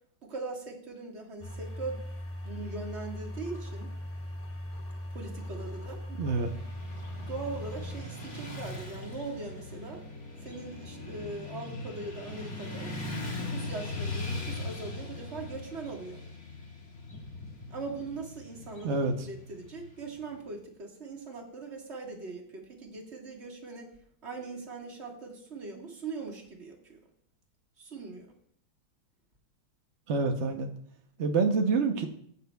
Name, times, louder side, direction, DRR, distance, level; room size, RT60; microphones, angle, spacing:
voice 1, 0.2-2.0 2.4-3.9 5.1-6.0 7.2-10.0 10.4-13.0 13.4-16.2 17.7-19.0 19.3-23.9 24.2-27.0 27.8-28.3, right 3 dB, 35° right, 0 dB, 1.7 m, -40 dB
sound 1, 1.4-8.0, left 1 dB, 15° left, 0.5 m, -39 dB
voice 2, 6.2-6.5 18.8-19.3 30.1-30.7 31.2-32.1, right 4 dB, 75° right, 4 dB, 0.6 m, -27 dB
Motorcycle / Traffic noise roadway noise, 6.3-20.5, left 2 dB, 35° left, 1.7 m, -40 dB
16.5 x 8.4 x 2.3 m, 0.63 s
omnidirectional pair, 2.3 m